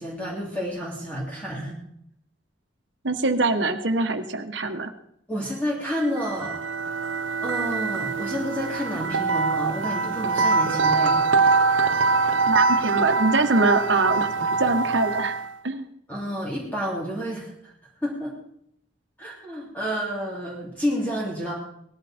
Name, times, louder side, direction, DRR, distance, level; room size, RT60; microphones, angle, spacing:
voice 1, 0.0-1.8 5.3-6.6 7.4-11.3 16.1-18.4 19.2-21.5, equal, 10° left, -4 dB, 3.1 m, -30 dB
voice 2, 3.0-4.9 12.5-15.4 15.6-15.9, right 3 dB, 70° right, 7 dB, 1.6 m, -23 dB
sound 1, 6.1-15.6, right 4 dB, 85° right, 0.8 m, -23 dB
19.5 x 14.0 x 4.5 m, 0.72 s
head